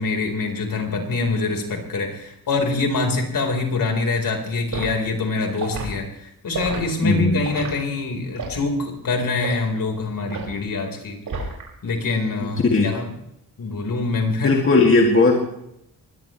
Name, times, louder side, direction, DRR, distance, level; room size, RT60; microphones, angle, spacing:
voice 1, 0.0-11.2 11.8-13.1 13.6-14.5, left 3 dB, 60° left, 2 dB, 4.5 m, -25 dB
Liquid, 4.7-4.9 5.5-5.9 6.5-6.8 7.4-7.7 8.3-8.6 9.4-9.6 10.3-10.6 11.3-11.7 12.0-12.3, right 4 dB, 60° right, 6.1 m, -31 dB
voice 2, 7.0-7.4 12.4-12.9 14.4-15.5, left 3 dB, 35° left, 0 dB, 2.5 m, -17 dB
23.5 x 19.0 x 3.3 m, 0.77 s
wide cardioid pair, 170°, 37 cm